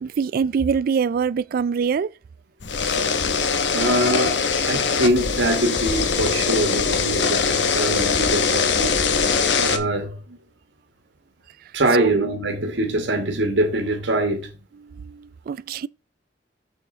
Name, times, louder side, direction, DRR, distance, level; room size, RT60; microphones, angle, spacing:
voice 1, 0.0-2.1 12.0-12.2 14.8-15.9, right 6 dB, 55° right, 0.3 m, -24 dB
sound 1, 2.6-9.8, left 5 dB, 75° left, 1.0 m, -22 dB
voice 2, 3.7-8.9 9.6-10.4 11.7-14.5, right 1 dB, 80° right, 1.7 m, -23 dB
6.6 x 6.5 x 3.9 m
head